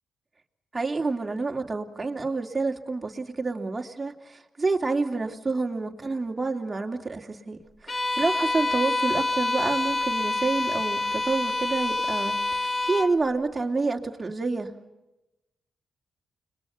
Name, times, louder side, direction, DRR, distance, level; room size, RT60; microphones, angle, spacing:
voice 1, 0.7-14.7, right 3 dB, 25° right, 2 dB, 3.1 m, -28 dB
Bowed string instrument, 7.9-13.2, left 2 dB, 30° left, 1.6 m, -27 dB
30.0 x 22.0 x 6.0 m, 0.98 s
cardioid pair, 65°, 0 cm